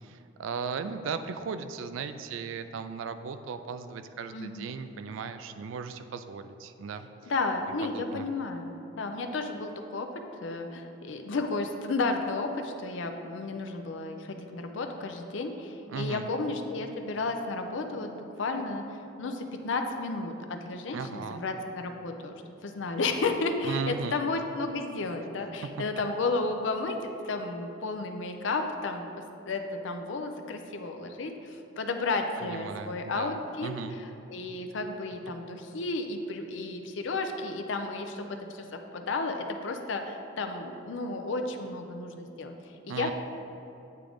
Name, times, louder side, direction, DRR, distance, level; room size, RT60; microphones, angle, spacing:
voice 1, 0.0-7.3 7.8-8.3 15.9-16.3 20.9-21.4 23.6-24.2 25.6-25.8 32.4-34.0 42.9-43.1, right 5 dB, 80° right, 10 dB, 0.3 m, -37 dB
voice 2, 4.3-4.7 7.3-10.1 10.4-27.0 27.2-33.7 34.0-42.5 42.8-43.1, left 3 dB, 70° left, 5 dB, 0.5 m, -33 dB
8.6 x 3.7 x 3.4 m, 2.8 s
head